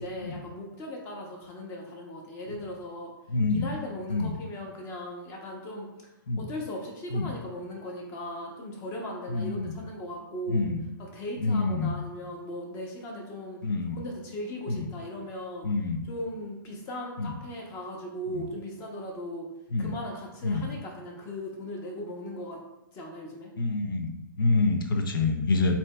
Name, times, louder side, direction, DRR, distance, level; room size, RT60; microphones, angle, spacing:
voice 1, 0.0-3.1 3.5-5.9 6.4-10.6 11.0-13.6 13.9-15.7 16.1-19.5 19.8-22.6 22.9-23.5, left 1 dB, 25° left, 1 dB, 0.8 m, -38 dB
voice 2, 3.3-3.7 4.1-4.3 6.3-6.5 7.1-7.3 9.3-9.8 10.5-10.8 11.4-12.0 13.6-14.0 14.7-14.9 15.6-16.0 17.2-17.3 18.3-18.4 19.7-19.9 20.4-20.7 23.6-25.7, left 3 dB, 75° left, 5 dB, 0.7 m, -27 dB
7.1 x 2.8 x 2.3 m, 0.98 s
hypercardioid pair, 150°, 12 cm